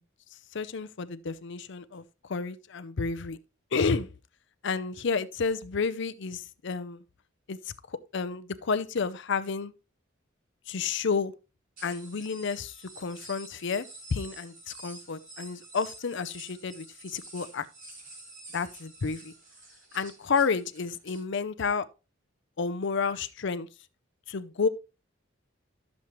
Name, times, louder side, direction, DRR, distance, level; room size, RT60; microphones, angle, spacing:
voice 1, 0.5-2.0 2.3-3.4 3.7-4.1 4.6-7.0 7.5-7.6 7.9-9.7 10.7-11.3 11.8-13.9 14.1-17.7 18.5-19.3 19.9-21.9 22.6-23.7 24.3-24.7, left 5 dB, 65° left, 0.6 m, -30 dB
sound 1, 11.8-21.2, right 2 dB, 45° right, 5.5 m, -49 dB
11.5 x 7.2 x 3.0 m
head